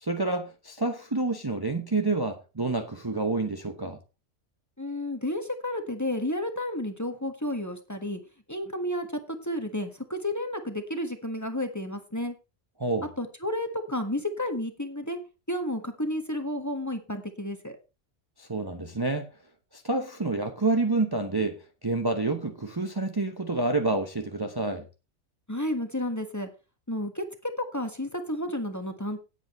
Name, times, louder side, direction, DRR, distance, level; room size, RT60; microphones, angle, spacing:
voice 1, 0.0-4.0 12.8-13.1 18.4-19.3 19.7-21.6 21.8-24.8, right 2 dB, 20° right, 1.0 m, -28 dB
voice 2, 4.8-8.2 8.5-9.1 9.4-12.3 13.2-15.2 15.5-17.8 25.5-26.5 26.9-27.2 27.6-29.2, left 1 dB, 15° left, 1.5 m, -31 dB
17.0 x 8.2 x 3.2 m
omnidirectional pair, 1.2 m